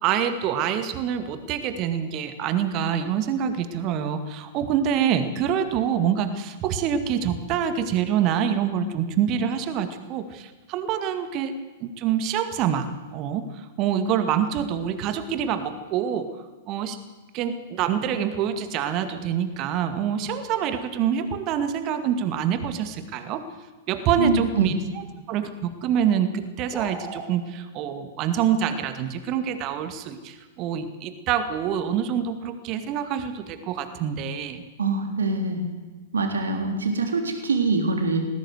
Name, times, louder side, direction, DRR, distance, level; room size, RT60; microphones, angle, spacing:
voice 1, 0.0-11.5 11.8-13.4 13.8-16.3 16.7-17.0 17.3-23.4 23.9-24.7 25.3-34.6, right 8 dB, 35° right, 9 dB, 2.1 m, -26 dB
voice 2, 24.2-24.7 34.8-35.7 36.1-38.2, right 3 dB, 70° right, 4 dB, 3.7 m, -24 dB
sound 1, 26.7-27.3, right 4 dB, 15° right, 3.6 m, -35 dB
20.0 x 17.0 x 8.1 m, 1.3 s
figure-of-eight pair, 100°, 0 cm